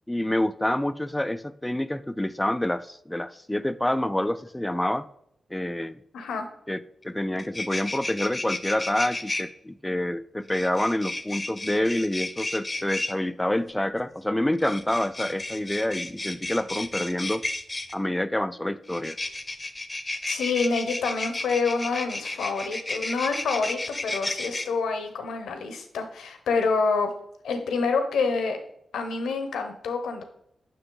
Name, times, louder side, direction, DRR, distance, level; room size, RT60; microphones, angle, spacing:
voice 1, 0.1-5.1 5.5-6.0 6.7-17.4 17.9-19.2, left 1 dB, 10° left, 0.5 m, -27 dB
voice 2, 6.1-6.4 20.3-27.1 27.4-28.6 28.9-30.2, left 4 dB, 90° left, 0.9 m, -27 dB
sound 1, 7.0-7.1 7.4-9.4 10.5-13.1 14.5-17.9 18.9-24.7, left 2 dB, 30° left, 0.8 m, -33 dB
7.7 x 5.7 x 3.9 m
supercardioid pair, 45°, 0 cm